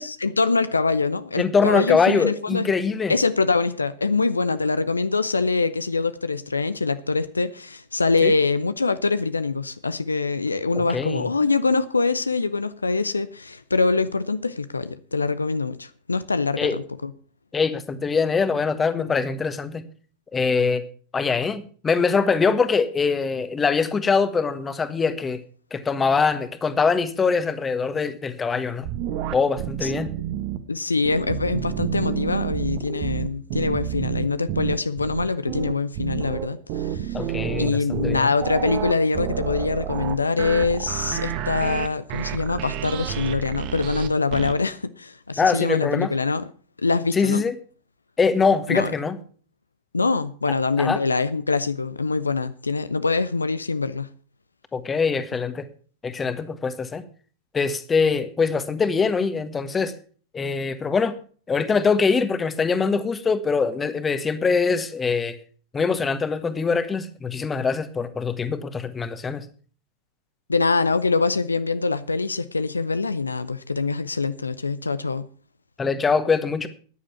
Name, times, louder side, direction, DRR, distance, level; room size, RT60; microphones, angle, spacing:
voice 1, 0.0-2.8 3.1-16.7 17.0-17.1 30.7-37.3 37.6-46.5 46.8-47.4 48.7-48.9 49.9-54.1 70.5-75.3, left 4 dB, 80° left, 0.7 m, -24 dB
voice 2, 1.4-3.1 8.2-8.3 10.7-11.3 16.6-16.8 17.5-19.9 20.3-20.8 21.1-25.4 25.7-28.9 29.3-30.1 37.1-38.3 45.4-46.1 47.1-47.5 48.2-49.2 50.8-51.0 54.7-55.6 56.0-57.0 57.5-59.9 60.3-61.1 61.5-65.4 65.7-69.4 75.8-76.7, left 5 dB, 15° left, 1.5 m, -23 dB
sound 1, 28.8-30.6 31.0-44.5, right 11 dB, 45° right, 1.5 m, -29 dB
14.5 x 10.0 x 6.0 m
figure-of-eight pair, 90°, 0 cm